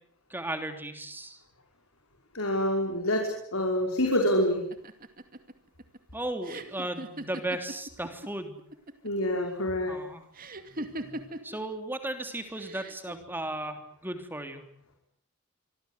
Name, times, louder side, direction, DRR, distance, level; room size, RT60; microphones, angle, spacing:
voice 1, 0.3-1.4 6.1-8.6 9.9-10.3 11.4-14.6, right 1 dB, 10° right, 7 dB, 3.3 m, -35 dB
voice 2, 2.3-4.6 9.0-9.9 11.0-11.1, left 1 dB, 70° left, 2 dB, 5.1 m, -27 dB
sound 1, 4.7-8.3 8.6-9.2 10.3-11.6 12.5-13.1, right 1 dB, 40° right, 2.5 m, -40 dB
26.0 x 24.0 x 8.2 m, 0.67 s
head